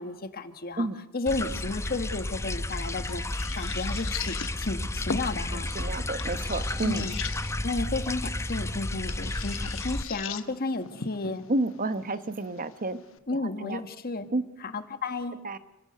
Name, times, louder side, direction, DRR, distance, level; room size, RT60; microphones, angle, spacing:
voice 1, 0.0-0.9 1.1-3.2 3.5-5.7 6.8-7.2 7.6-11.4 13.3-14.3 14.6-15.3, left 3 dB, 45° left, 9 dB, 1.4 m, -32 dB
sound 1, 1.3-10.0, left 1 dB, 15° left, 0.7 m, -32 dB
sound 2, 2.2-13.2, left 6 dB, 65° left, 1.1 m, -41 dB
voice 2, 5.5-7.0 11.5-13.0 13.6-13.8 14.3-14.4 15.4-15.6, right 2 dB, 40° right, 11 dB, 1.1 m, -30 dB
30.0 x 16.0 x 6.8 m, 0.96 s
head